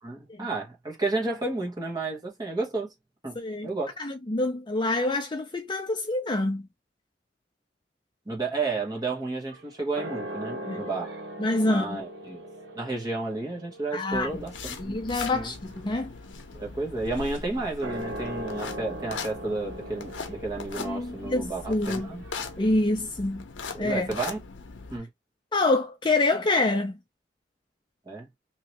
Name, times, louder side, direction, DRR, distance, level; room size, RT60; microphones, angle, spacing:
voice 1, 0.0-2.9 3.2-3.4 3.6-4.0 8.3-11.1 11.6-12.4 12.7-15.0 15.3-15.5 16.5-22.2 23.7-24.4 24.9-25.1 28.1-28.3, right 3 dB, 20° right, 1.2 m, -32 dB
voice 2, 3.4-3.7 4.0-6.7 10.7-10.9 11.4-12.0 13.9-14.3 14.8-16.1 20.8-22.1 22.6-23.4 23.8-24.1 25.5-27.0, left 2 dB, 25° left, 0.5 m, -26 dB
sound 1, 9.0-22.7, right 1 dB, 80° right, 1.2 m, -41 dB
sound 2, 14.1-25.0, left 4 dB, 90° left, 0.7 m, -40 dB
3.0 x 2.8 x 2.9 m
head